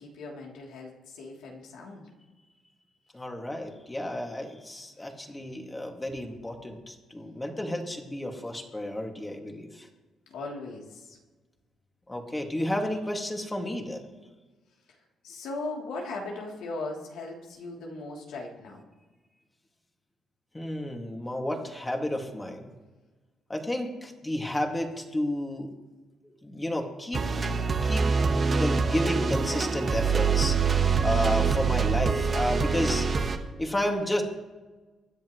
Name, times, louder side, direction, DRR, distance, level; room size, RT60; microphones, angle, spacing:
voice 1, 0.0-2.1 10.3-11.2 14.9-15.0 15.2-18.8, left 2 dB, 85° left, -2 dB, 3.2 m, -38 dB
voice 2, 3.1-9.9 12.1-14.1 20.5-22.7 23.5-25.7 26.2-27.5 27.8-28.1 28.6-33.2 33.6-34.2, left 1 dB, 15° left, 2 dB, 2.3 m, -31 dB
sound 1, 27.1-33.4, right 5 dB, 40° right, 1.4 m, -25 dB
25.0 x 10.5 x 3.2 m, 1.3 s
cardioid pair, 90°, 0 cm